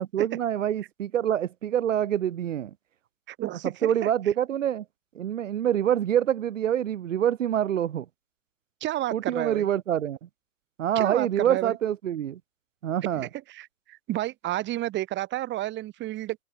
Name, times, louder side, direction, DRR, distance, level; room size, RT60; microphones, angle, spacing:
voice 1, 0.0-2.7 3.8-4.8 5.2-8.1 9.1-10.2 10.8-12.4 12.8-13.3, right 10 dB, 65° right, 4.3 m, -26 dB
voice 2, 3.3-3.9 8.8-9.7 11.0-11.8 13.1-16.4, right 15 dB, 25° right, 7.3 m, -31 dB
hypercardioid pair, 130°, 40 cm